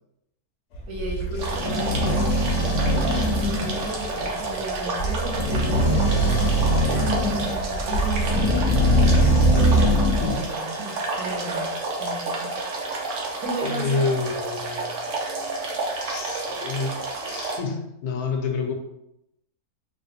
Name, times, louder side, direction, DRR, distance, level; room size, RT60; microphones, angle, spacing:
sound 1, 0.7-10.4, right 1 dB, 60° left, 0.8 m, -22 dB
voice 1, 0.9-9.0 9.5-11.7 12.0-13.0 13.4-14.3, right 2 dB, 85° right, -1 dB, 1.3 m, -35 dB
sound 2, 1.4-17.6, right 3 dB, 65° right, 0.9 m, -30 dB
voice 2, 13.6-15.0 16.1-18.7, left 4 dB, 85° left, 4 dB, 1.1 m, -28 dB
3.3 x 2.3 x 2.8 m, 0.83 s
omnidirectional pair, 1.6 m